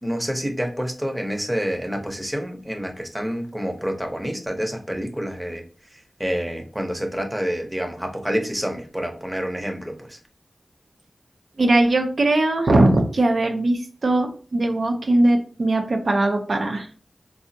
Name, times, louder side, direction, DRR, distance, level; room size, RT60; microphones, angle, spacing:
voice 1, 0.0-5.6 6.2-10.2, equal, 10° right, 3 dB, 0.7 m, -28 dB
voice 2, 11.6-16.9, right 2 dB, 70° right, 4 dB, 0.6 m, -20 dB
3.4 x 2.0 x 2.6 m, 0.39 s
cardioid pair, 45°, 0 cm